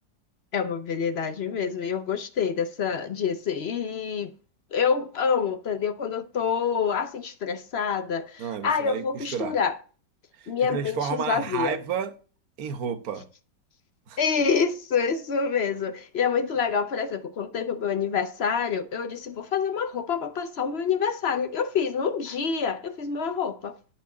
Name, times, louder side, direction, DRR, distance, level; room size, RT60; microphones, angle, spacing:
voice 1, 0.5-4.3 4.7-9.8 10.5-11.8 14.2-23.8, left 6 dB, 55° left, 0.7 m, -27 dB
voice 2, 8.4-9.6 10.4-12.1 12.6-13.3 14.1-14.2, right 7 dB, 55° right, 1.4 m, -31 dB
11.0 x 4.6 x 5.9 m
omnidirectional pair, 1.9 m